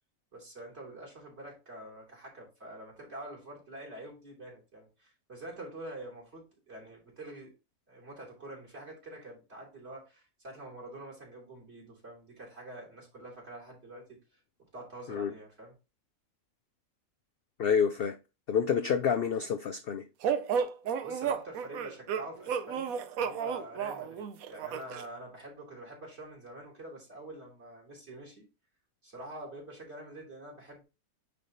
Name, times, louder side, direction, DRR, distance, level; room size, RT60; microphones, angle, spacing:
voice 1, 0.3-7.5 7.9-14.2 14.6-15.7 21.0-22.9 23.2-28.5 29.0-30.8, right 1 dB, 45° right, 3.4 m, -46 dB
voice 2, 17.6-18.2 18.5-20.1, left 7 dB, 60° left, 0.6 m, -28 dB
sound 1, 20.2-25.1, right 7 dB, 70° right, 1.1 m, -32 dB
9.3 x 3.4 x 4.0 m
omnidirectional pair, 1.6 m